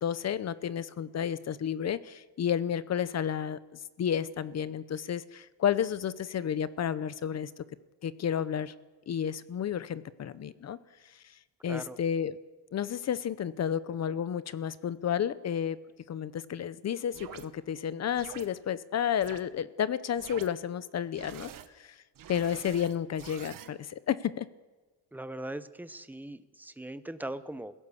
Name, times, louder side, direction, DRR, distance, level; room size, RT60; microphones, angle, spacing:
voice 1, 0.0-3.6 4.0-7.5 8.0-8.7 9.1-10.8 11.6-12.4 12.7-15.8 16.1-21.5 21.8-22.0 22.3-24.5, left 9 dB, 40° left, 16 dB, 0.7 m, -31 dB
sound 1, 17.1-17.5 18.1-18.5 19.2-19.4 20.1-20.5 21.1-21.7 22.1-23.7, right 10 dB, 50° right, 1.3 m, -46 dB
voice 2, 25.1-27.7, right 1 dB, 5° right, 12 dB, 0.7 m, -40 dB
29.5 x 16.5 x 7.1 m, 1.3 s
cardioid pair, 175°, 42 cm